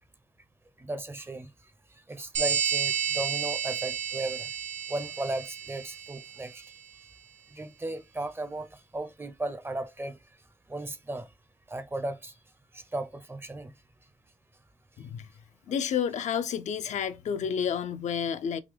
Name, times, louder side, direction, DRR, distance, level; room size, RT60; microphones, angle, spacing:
voice 1, 0.8-1.5 1.9-4.5 4.9-6.6 7.5-10.2 10.7-11.3 11.7-12.3 12.7-13.7, right 2 dB, 20° right, 0.5 m, -36 dB
sound 1, 2.3-6.6, right 7 dB, 80° right, 0.7 m, -31 dB
voice 2, 15.7-18.6, left 7 dB, 70° left, 0.4 m, -30 dB
3.7 x 2.8 x 3.2 m
cardioid pair, 90°, 13 cm